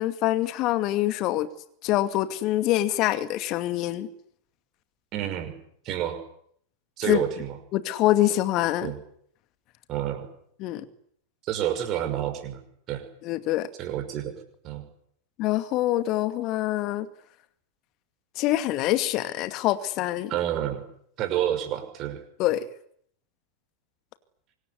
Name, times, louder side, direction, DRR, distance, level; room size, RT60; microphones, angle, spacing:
voice 1, 0.0-1.5 1.8-4.1 7.1-7.2 7.7-8.9 10.6-10.8 13.2-13.7 15.4-17.1 18.4-20.3 22.4-22.7, left 15 dB, 40° left, 2.3 m, -25 dB
voice 2, 5.1-5.6 5.8-6.2 7.0-7.6 8.8-9.0 9.9-10.3 11.4-12.6 12.9-13.0 13.8-14.3 14.6-14.8 20.3-20.8 21.2-22.2, right 11 dB, 35° right, 5.9 m, -29 dB
25.5 x 22.0 x 9.9 m
figure-of-eight pair, 90°, 0 cm